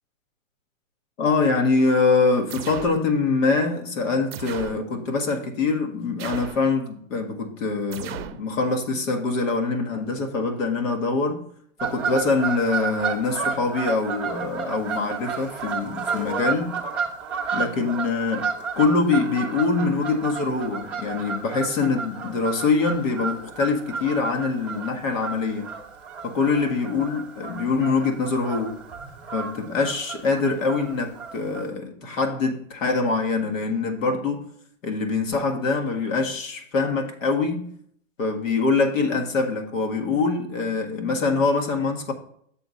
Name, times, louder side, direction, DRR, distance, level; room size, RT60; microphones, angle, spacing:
voice 1, 1.2-11.4 11.8-16.8 17.5-18.5 18.8-25.7 26.2-28.8 29.3-34.4 34.8-37.7 38.2-42.1, left 4 dB, 85° left, 1.6 m, -24 dB
sound 1, 2.5-3.0 4.3-4.8 6.2-6.7 7.9-8.4, right 10 dB, 50° right, 0.6 m, -36 dB
Fowl / Bird vocalization bird call bird song, 11.8-31.7, right 6 dB, 5° right, 0.5 m, -32 dB
6.7 x 4.1 x 6.4 m
hypercardioid pair, 155°, 38 cm